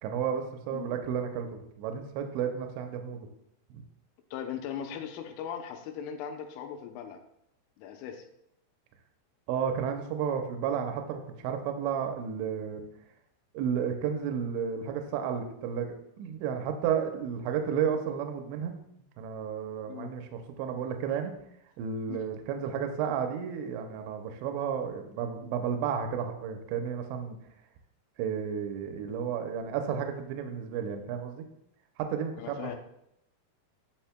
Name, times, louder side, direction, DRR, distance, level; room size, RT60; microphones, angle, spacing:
voice 1, 0.0-3.3 3.7-3.8 9.5-12.8 13.5-15.9 16.2-18.7 19.2-21.3 21.8-27.4 28.2-31.4 32.0-32.8, right 7 dB, 80° right, 5 dB, 2.8 m, -32 dB
voice 2, 4.3-7.2 7.8-8.2 19.9-20.1 22.1-22.2 32.4-32.8, left 8 dB, 90° left, 5 dB, 3.2 m, -39 dB
10.0 x 6.2 x 2.2 m, 0.77 s
omnidirectional pair, 5.5 m